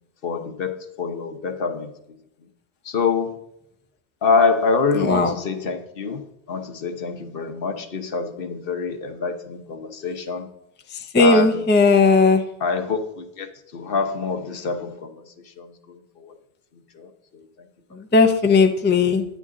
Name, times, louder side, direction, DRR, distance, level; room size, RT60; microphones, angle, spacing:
voice 1, 0.2-1.9 2.9-3.3 4.2-6.2 6.5-10.5 11.2-11.6 12.6-13.5 13.7-15.1 15.6-16.3 17.0-17.1, left 4 dB, 55° left, 1.0 m, -25 dB
voice 2, 4.9-5.3 10.9-12.5 17.9-19.3, left 4 dB, 15° left, 0.4 m, -17 dB
10.0 x 9.4 x 3.7 m
omnidirectional pair, 1.1 m